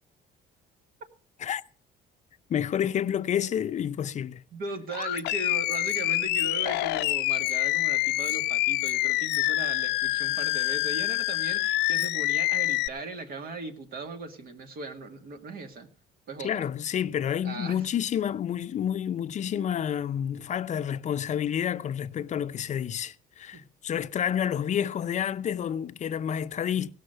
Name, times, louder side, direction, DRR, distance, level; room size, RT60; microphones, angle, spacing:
voice 1, 2.5-4.4 16.4-26.9, left 9 dB, 45° left, 0.6 m, -29 dB
voice 2, 4.5-15.9 16.3-16.7 17.4-17.8 23.5-23.7, right 3 dB, 65° right, 2.1 m, -38 dB
Animal, 4.9-12.9, left 18 dB, 85° left, 0.6 m, -26 dB
17.5 x 6.5 x 6.5 m
cardioid pair, 110°, 17 cm